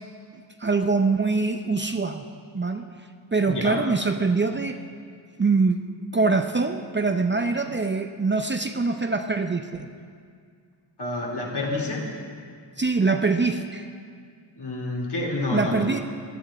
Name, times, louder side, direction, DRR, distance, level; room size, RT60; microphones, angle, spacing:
voice 1, 0.6-2.2 2.5-2.9 3.3-4.8 5.4-5.8 6.1-9.9 12.8-13.9 15.5-16.0, right 4 dB, 25° right, 6 dB, 0.6 m, -23 dB
voice 2, 3.5-3.8 11.0-12.0 14.6-16.0, left 2 dB, 60° left, -2 dB, 2.9 m, -28 dB
16.5 x 10.5 x 4.3 m, 2.1 s
wide cardioid pair, 90°, 45 cm